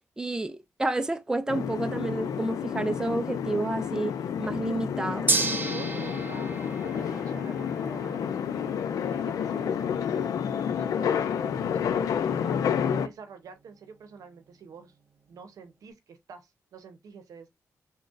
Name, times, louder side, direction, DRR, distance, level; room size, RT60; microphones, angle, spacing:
voice 1, 0.2-5.4, right 2 dB, 10° right, 0.4 m, -30 dB
sound 1, 1.5-13.1, left 8 dB, 85° left, 0.4 m, -30 dB
Gong, 5.3-15.5, right 3 dB, 35° right, 0.7 m, -36 dB
voice 2, 5.7-8.3 9.1-12.6 12.9-14.9 15.3-17.5, right 6 dB, 80° right, 0.8 m, -47 dB
sound 2, 6.9-11.9, left 1 dB, 30° left, 1.7 m, -53 dB
3.7 x 2.2 x 2.5 m
cardioid pair, 90°, 6 cm